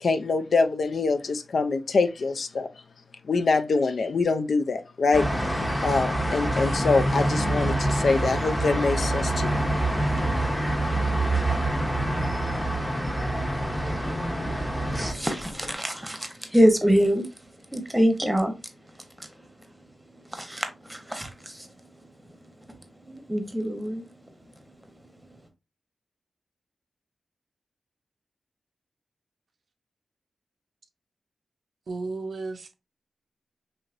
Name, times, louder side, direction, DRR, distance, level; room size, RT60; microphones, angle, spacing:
voice 1, 0.0-2.7 3.2-5.3 5.8-9.6 10.8-10.9, left 4 dB, 70° left, 0.3 m, -24 dB
sound 1, 5.1-15.1, right 1 dB, 15° left, 0.8 m, -26 dB
sound 2, 9.5-15.8, left 1 dB, 55° left, 1.2 m, -42 dB
voice 2, 14.9-17.3 17.7-18.6 20.3-21.7 23.1-24.0, equal, 10° right, 0.8 m, -24 dB
voice 3, 31.9-32.7, right 3 dB, 70° right, 0.5 m, -33 dB
3.1 x 2.6 x 2.5 m
cardioid pair, 50°, 0 cm